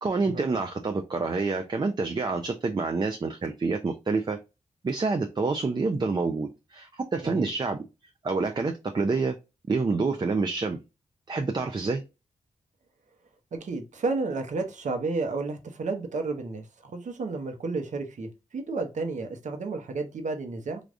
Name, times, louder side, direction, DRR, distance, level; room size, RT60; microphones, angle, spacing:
voice 1, 0.0-4.4 4.8-7.8 8.2-9.4 9.7-10.8 11.3-12.0, right 4 dB, 30° right, 0.5 m, -27 dB
voice 2, 13.5-20.8, right 3 dB, 65° right, 0.8 m, -32 dB
3.4 x 2.4 x 2.5 m
cardioid pair, 55°, 14 cm